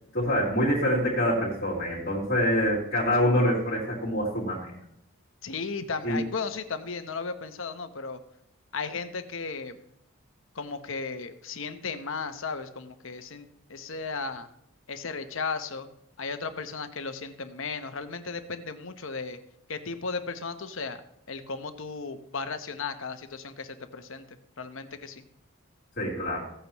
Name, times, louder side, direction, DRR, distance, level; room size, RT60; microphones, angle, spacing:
voice 1, 0.1-4.7 6.0-6.2 26.0-26.4, equal, 45° left, -8 dB, 3.2 m, -25 dB
voice 2, 5.4-8.2 8.7-9.8 10.5-13.4 13.7-14.5 14.9-15.9 16.2-19.4 19.7-21.0 21.3-24.2 24.6-25.2, left 4 dB, 65° left, 8 dB, 0.9 m, -35 dB
16.0 x 8.9 x 3.0 m, 0.75 s
head